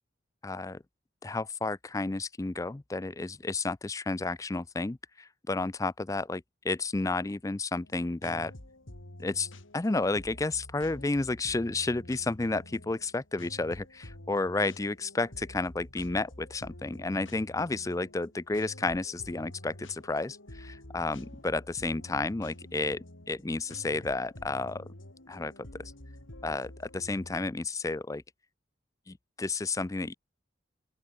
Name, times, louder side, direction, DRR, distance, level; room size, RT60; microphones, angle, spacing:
voice 1, 0.4-0.8 1.2-8.5 9.2-24.9 25.3-25.5 25.8-25.9 26.4-28.2 29.1-30.1, left 3 dB, 15° left, 0.4 m, -32 dB
sound 1, 7.8-27.5, left 1 dB, 85° left, 3.2 m, -48 dB
open air
head